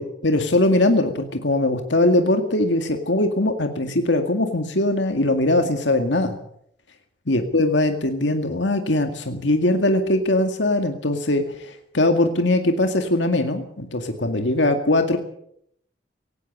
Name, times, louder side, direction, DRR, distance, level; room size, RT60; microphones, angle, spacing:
voice 1, 0.0-6.4 7.3-15.2, left 1 dB, 80° left, 6 dB, 2.1 m, -21 dB
18.0 x 17.5 x 8.7 m, 0.70 s
head